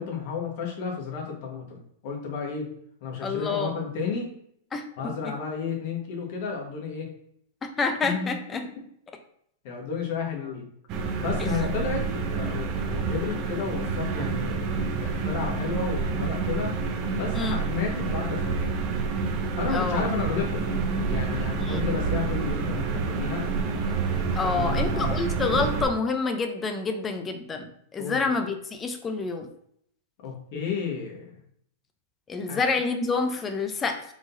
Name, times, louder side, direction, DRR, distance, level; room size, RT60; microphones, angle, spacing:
voice 1, 0.0-2.7 3.0-4.3 5.0-7.1 8.0-8.3 9.6-10.7 11.2-16.8 17.1-18.7 19.6-23.4 24.4-25.3 28.0-28.2 30.2-31.4 32.5-32.6, left 5 dB, 55° left, 0 dB, 1.5 m, -32 dB
voice 2, 3.2-3.7 4.7-5.1 7.6-8.6 11.4-11.5 17.3-17.6 19.7-20.0 21.6-21.9 24.3-29.5 32.3-34.0, left 4 dB, 20° left, 6 dB, 0.7 m, -28 dB
sound 1, 10.9-25.9, right 4 dB, 40° right, 0.8 m, -28 dB
4.8 x 4.0 x 2.7 m, 0.68 s
hypercardioid pair, 115°, 0 cm